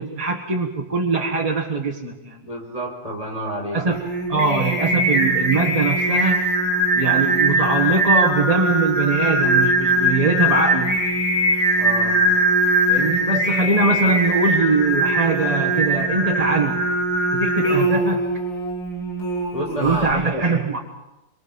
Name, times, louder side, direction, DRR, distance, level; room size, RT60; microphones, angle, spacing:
voice 1, 0.0-2.4 3.7-4.0 4.3-6.5 6.9-10.9 12.9-16.9 17.3-18.3 19.8-20.8, right 3 dB, 20° right, 0 dB, 1.5 m, -22 dB
voice 2, 2.4-3.8 11.8-12.2 19.5-20.5, right 1 dB, 20° left, 0 dB, 4.6 m, -29 dB
Singing, 3.9-20.1, right 1 dB, 85° left, 4.3 m, -21 dB
24.5 x 24.0 x 5.4 m, 0.93 s
omnidirectional pair, 2.0 m